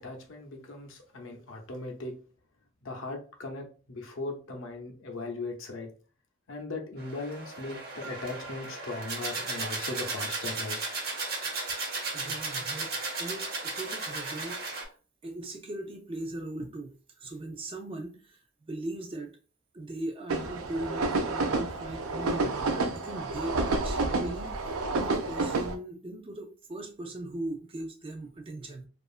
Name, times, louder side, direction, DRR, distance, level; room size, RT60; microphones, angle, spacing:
voice 1, 0.0-2.1 2.8-5.9 6.5-10.8, left 2 dB, 65° left, 0.6 m, -38 dB
sound 1, 7.0-14.8, right 3 dB, 45° right, 0.7 m, -35 dB
voice 2, 12.1-12.9 13.2-14.9 15.2-18.4 18.7-19.3 19.7-28.9, right 2 dB, 25° right, 0.4 m, -39 dB
sound 2, 20.3-25.7, right 3 dB, 90° right, 0.5 m, -29 dB
2.8 x 2.4 x 2.3 m
head